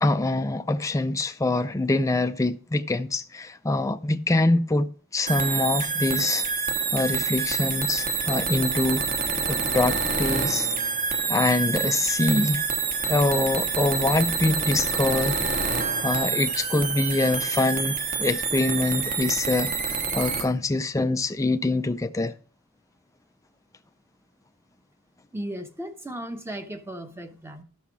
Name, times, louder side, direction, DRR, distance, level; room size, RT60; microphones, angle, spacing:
voice 1, 0.0-4.9 5.1-6.5 6.9-9.0 9.5-10.7 11.3-12.6 13.1-15.4 16.0-22.3, left 2 dB, 15° left, 0.4 m, -24 dB
sound 1, 5.3-20.5, right 5 dB, 40° right, 1.4 m, -27 dB
voice 2, 25.3-27.6, right 1 dB, 10° right, 0.9 m, -36 dB
13.0 x 5.8 x 4.7 m
head